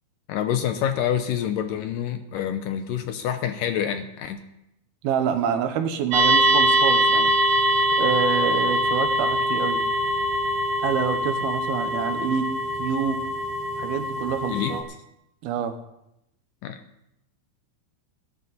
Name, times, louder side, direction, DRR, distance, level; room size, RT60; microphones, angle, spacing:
voice 1, 0.3-4.4 14.5-14.8 16.6-16.8, left 9 dB, 75° left, 8 dB, 2.2 m, -27 dB
voice 2, 5.0-7.3 8.0-9.8 10.8-12.5 12.8-13.2 13.8-14.8 15.4-15.8, right 8 dB, 75° right, 8 dB, 3.0 m, -27 dB
sound 1, 6.1-14.8, equal, 45° right, 3.9 m, -23 dB
21.0 x 11.0 x 4.2 m, 0.84 s
omnidirectional pair, 4.5 m